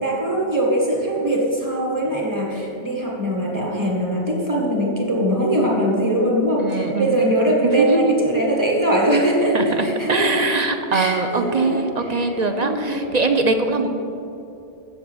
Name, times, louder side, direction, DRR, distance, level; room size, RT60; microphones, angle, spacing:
voice 1, 0.0-10.6 10.9-13.0 13.8-13.9, right 1 dB, 15° right, -2 dB, 1.6 m, -21 dB
voice 2, 6.6-7.2 7.6-8.4 9.5-13.9, right 3 dB, 45° right, 6 dB, 0.6 m, -22 dB
7.3 x 7.2 x 7.8 m, 2.8 s
omnidirectional pair, 1.2 m